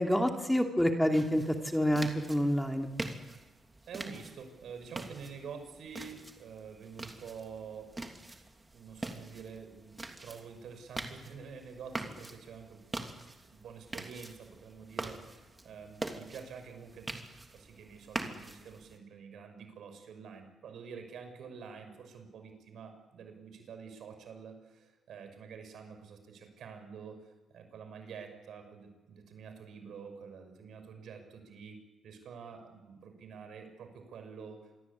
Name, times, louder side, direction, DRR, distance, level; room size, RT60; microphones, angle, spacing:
voice 1, 0.0-2.9, equal, 5° left, 3 dB, 2.7 m, -28 dB
sound 1, 1.1-19.0, right 2 dB, 20° right, 3.0 m, -44 dB
voice 2, 3.9-7.9 8.7-12.8 13.5-17.1 17.5-27.2 27.5-34.6, right 6 dB, 70° right, 7 dB, 5.9 m, -48 dB
26.5 x 22.5 x 8.5 m, 1.2 s
cardioid pair, 90°, 0 cm